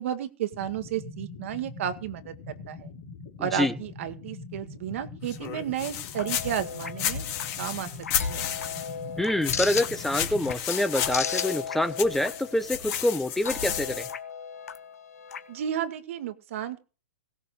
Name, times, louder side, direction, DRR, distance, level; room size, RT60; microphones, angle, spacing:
voice 1, 0.0-2.9 3.4-7.2 7.6-7.9 8.2-8.5 15.5-16.8, right 10 dB, 60° right, 1.9 m, -32 dB
sound 1, 0.5-10.5, left 4 dB, 65° left, 2.8 m, -43 dB
voice 2, 3.4-3.7 9.2-14.1, left 1 dB, 5° left, 0.6 m, -26 dB
sound 2, 5.3-9.1 9.4-14.1, left 9 dB, 35° left, 2.4 m, -33 dB
sound 3, 6.1-15.7, left 7 dB, 85° left, 1.3 m, -36 dB
17.0 x 6.2 x 6.5 m
hypercardioid pair, 135°, 8 cm